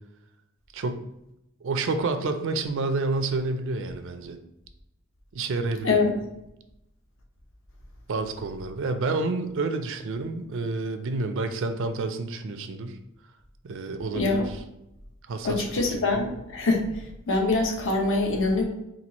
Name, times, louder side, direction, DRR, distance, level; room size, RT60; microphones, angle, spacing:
voice 1, 1.6-4.4 5.3-6.0 8.1-13.0 13.6-14.4 15.3-16.2, right 3 dB, 60° right, 8 dB, 0.4 m, -29 dB
voice 2, 14.1-14.5 15.4-18.6, left 3 dB, 60° left, 1 dB, 0.8 m, -24 dB
4.4 x 2.4 x 4.0 m, 0.85 s
head